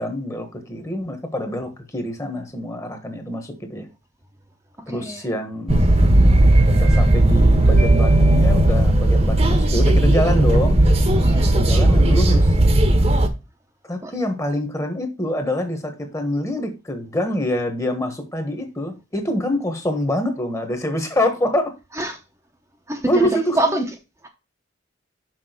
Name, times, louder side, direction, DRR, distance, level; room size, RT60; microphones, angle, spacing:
voice 1, 0.0-3.9 4.9-10.8 11.5-12.6 13.9-21.8 23.1-23.8, left 1 dB, 15° left, 1.4 m, -25 dB
voice 2, 4.9-5.3 11.2-11.6 14.0-14.1 21.9-22.2 22.9-23.9, right 1 dB, 15° right, 0.9 m, -25 dB
sound 1, 5.7-13.3, right 1 dB, 35° right, 1.1 m, -15 dB
6.2 x 6.0 x 4.5 m
head